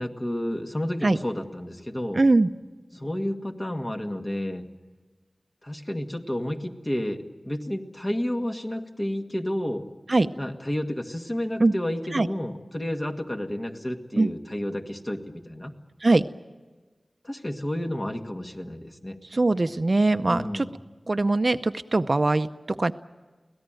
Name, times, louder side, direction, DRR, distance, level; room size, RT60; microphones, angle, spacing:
voice 1, 0.0-2.2 2.9-4.7 5.6-9.9 10.4-15.7 17.2-19.2 20.3-20.8, left 1 dB, 30° left, 4 dB, 2.0 m, -31 dB
voice 2, 2.1-2.5 10.1-10.3 11.6-11.7 12.1-12.3 14.2-14.3 16.0-16.2 19.3-20.7 21.1-22.5 22.8-22.9, right 2 dB, 50° right, 10 dB, 0.7 m, -21 dB
24.5 x 17.5 x 9.1 m, 1.3 s
wide cardioid pair, 60°, 0 cm